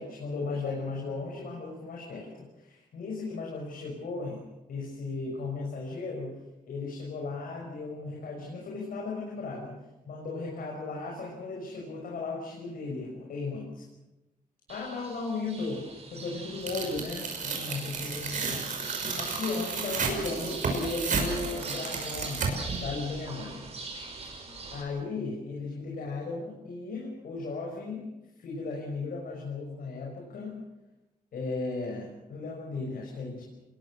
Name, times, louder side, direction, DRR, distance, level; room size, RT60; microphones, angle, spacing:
voice 1, 0.0-4.4 4.7-6.4 6.6-13.8 14.7-18.7 19.1-23.7 24.7-28.1 28.4-30.5 31.3-33.4, left 3 dB, 75° left, -1 dB, 6.1 m, -36 dB
sound 1, 14.7-24.8, right 3 dB, 45° right, 5.5 m, -42 dB
Tearing, 16.7-22.8, right 4 dB, 60° right, 6.0 m, -32 dB
27.5 x 21.5 x 6.5 m, 0.99 s
wide cardioid pair, 125°, 15 cm